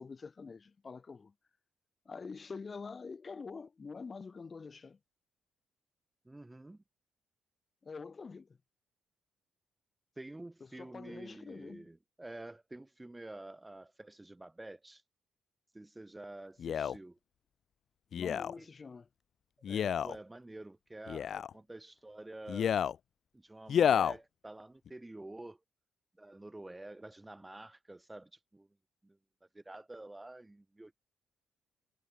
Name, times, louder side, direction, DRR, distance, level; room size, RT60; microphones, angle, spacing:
voice 1, 0.0-1.3 2.0-5.0 7.8-8.5 10.8-11.9 18.1-19.1, left 4 dB, 35° left, 3.3 m, -46 dB
voice 2, 6.2-6.8 10.2-15.0 15.7-17.2 18.6-18.7 19.7-22.8 23.3-25.6 26.2-28.7 29.0-29.2 29.5-31.0, right 2 dB, 15° right, 1.6 m, -49 dB
Male speech man speaking, 16.6-17.0 18.1-18.5 19.6-20.2 21.1-21.5 22.5-23.0 23.7-24.2 24.9-25.0, left 8 dB, 60° left, 0.9 m, -30 dB
cardioid pair, 90°, 0 cm